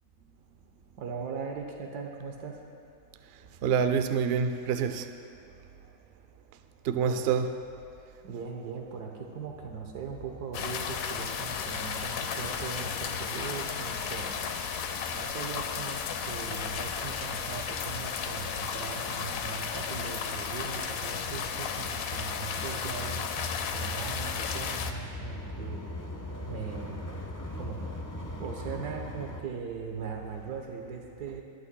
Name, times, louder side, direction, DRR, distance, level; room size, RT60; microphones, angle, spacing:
voice 1, 1.0-2.6 7.0-7.2 8.2-14.5 15.1-25.8 26.5-27.0 27.6-27.8 28.4-31.4, right 5 dB, 85° right, 2 dB, 1.6 m, -39 dB
voice 2, 3.6-5.1 6.8-7.5, right 6 dB, 65° right, 8 dB, 0.6 m, -26 dB
sound 1, 10.1-29.4, left 2 dB, 20° left, 0.6 m, -43 dB
sound 2, 10.5-24.9, left 7 dB, 70° left, 1.0 m, -34 dB
21.0 x 11.0 x 2.3 m, 2.5 s
omnidirectional pair, 1.7 m